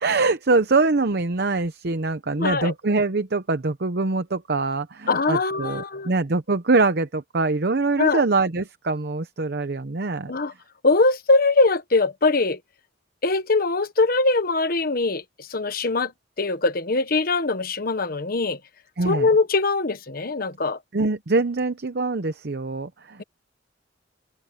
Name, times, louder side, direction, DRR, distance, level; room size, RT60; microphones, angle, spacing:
voice 1, 0.0-10.3 19.0-19.3 20.9-23.2, right 3 dB, 60° right, 0.8 m, -23 dB
voice 2, 2.4-2.7 5.1-6.1 8.0-8.2 10.3-10.5 10.8-12.6 13.2-16.1 16.4-18.6 19.0-20.8, left 3 dB, 50° left, 1.3 m, -22 dB
open air
head